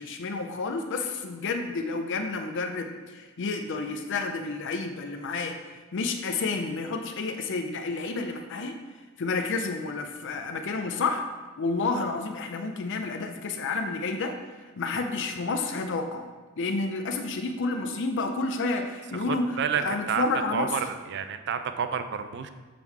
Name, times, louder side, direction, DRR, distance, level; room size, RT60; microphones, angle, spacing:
voice 1, 0.0-5.6 5.9-8.8 9.2-11.2 11.6-14.4 14.8-16.3 16.6-20.8, left 3 dB, 60° left, 6 dB, 0.5 m, -30 dB
voice 2, 19.3-20.3 20.5-22.5, right 7 dB, 55° right, 9 dB, 0.4 m, -30 dB
7.0 x 3.7 x 4.6 m, 1.3 s
head